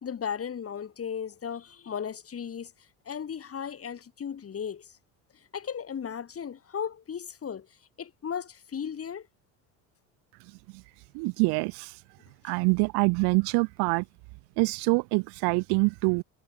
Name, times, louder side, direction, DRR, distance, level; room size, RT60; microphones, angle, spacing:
voice 1, 0.0-2.7 3.1-4.8 5.5-7.7 8.0-9.2 12.5-12.6, left 7 dB, 35° left, 2.5 m, -36 dB
voice 2, 11.1-11.9 12.4-14.0 14.6-16.2, right 31 dB, 70° right, 0.6 m, -25 dB
supercardioid pair, 80°, 40 cm